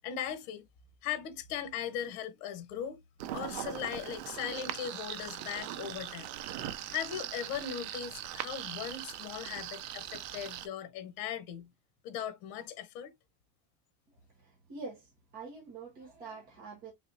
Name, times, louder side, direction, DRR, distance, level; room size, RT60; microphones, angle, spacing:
voice 1, 0.0-0.6 1.0-3.0 3.3-6.3 6.9-11.7 12.0-13.1, left 9 dB, 70° left, 1.1 m, -38 dB
sound 1, 3.2-10.7, right 12 dB, 60° right, 0.7 m, -40 dB
voice 2, 14.4-15.1 15.3-16.9, right 4 dB, 20° right, 0.9 m, -45 dB
3.9 x 3.3 x 2.6 m
cardioid pair, 175°, 45 cm